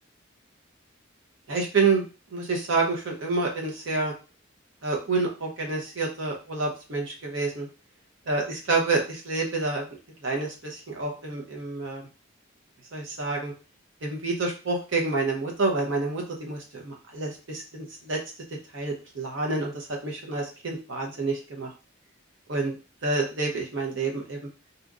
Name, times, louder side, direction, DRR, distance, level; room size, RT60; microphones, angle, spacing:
voice 1, 1.5-2.0 2.3-4.1 4.8-7.7 8.3-9.9 10.2-12.0 12.9-13.5 14.0-18.2 18.7-21.7 22.5-22.7 23.0-24.4, right 3 dB, 65° right, -1 dB, 0.7 m, -28 dB
2.8 x 2.4 x 3.6 m, 0.32 s
head